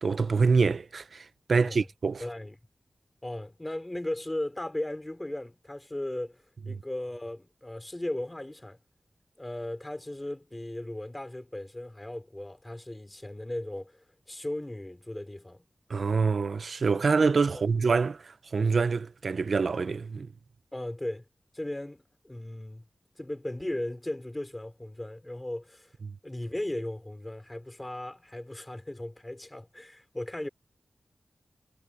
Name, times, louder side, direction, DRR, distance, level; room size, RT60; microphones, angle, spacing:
voice 1, 0.0-2.2 15.9-20.3, right 4 dB, 70° right, 0.8 m, -26 dB
voice 2, 1.5-1.9 2.2-2.6 3.2-8.8 9.4-15.6 17.5-17.6 20.7-21.2 21.5-22.9 23.2-25.9 26.2-30.5, left 1 dB, 15° left, 4.8 m, -37 dB
wide cardioid pair, 100°, 0 cm